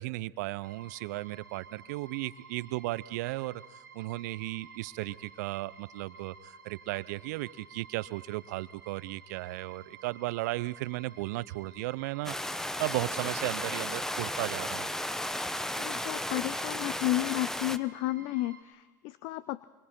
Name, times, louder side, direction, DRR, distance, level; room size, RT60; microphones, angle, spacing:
voice 1, 0.0-3.6 3.9-14.9, right 19 dB, 65° right, 19 dB, 0.6 m, -35 dB
sound 1, 0.6-18.6, right 5 dB, 90° right, 2.3 m, -53 dB
sound 2, 12.2-17.8, left 1 dB, 5° left, 0.9 m, -34 dB
voice 2, 15.8-19.7, left 18 dB, 55° left, 17 dB, 0.6 m, -32 dB
26.0 x 24.0 x 4.4 m, 1.3 s
hypercardioid pair, 85°, 10 cm